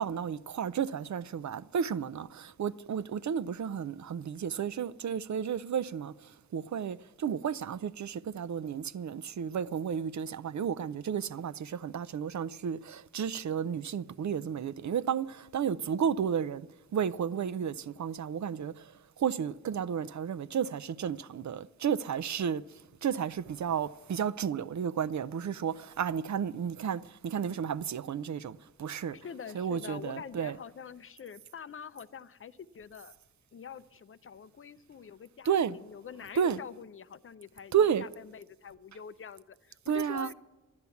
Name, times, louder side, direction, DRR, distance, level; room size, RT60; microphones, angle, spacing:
voice 1, 0.0-6.1 6.5-16.7 16.9-18.7 19.2-22.6 23.0-29.2 29.5-30.6 35.5-35.8 36.4-36.6 37.7-38.0 39.9-40.3, right 8 dB, 60° right, 0.5 m, -32 dB
voice 2, 29.1-33.1 33.5-37.7 38.0-40.3, left 7 dB, 40° left, 0.5 m, -45 dB
12.5 x 10.5 x 7.0 m
wide cardioid pair, 110°, 33 cm